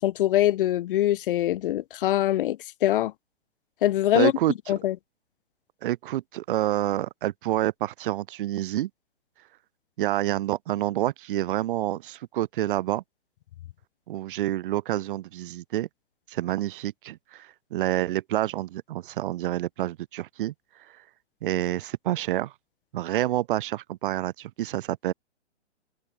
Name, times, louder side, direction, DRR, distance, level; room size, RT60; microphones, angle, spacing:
voice 1, 0.0-3.1 3.8-4.3 4.7-5.0, left 13 dB, 50° left, 2.3 m, -23 dB
voice 2, 4.1-4.5 5.8-8.9 10.0-13.0 14.1-15.9 16.3-20.5 21.4-22.5 22.9-25.1, right 14 dB, 50° right, 2.8 m, -28 dB
figure-of-eight pair, 125°, 35 cm